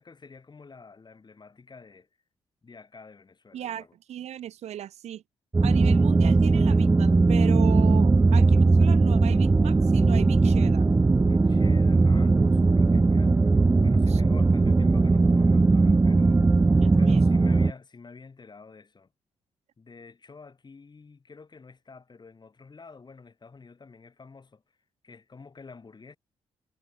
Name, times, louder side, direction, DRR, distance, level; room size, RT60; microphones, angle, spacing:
voice 1, 0.0-2.1 2.6-3.9 8.3-8.4 11.2-13.4 13.8-16.4 17.0-19.1 19.8-24.6 25.0-26.2, left 4 dB, 40° left, 5.1 m, -48 dB
voice 2, 3.5-5.2 5.6-10.9 14.1-14.2 16.8-17.2, right 11 dB, 70° right, 0.8 m, -37 dB
sound 1, 5.5-17.7, right 3 dB, 20° right, 0.4 m, -19 dB
supercardioid pair, 55°, 12 cm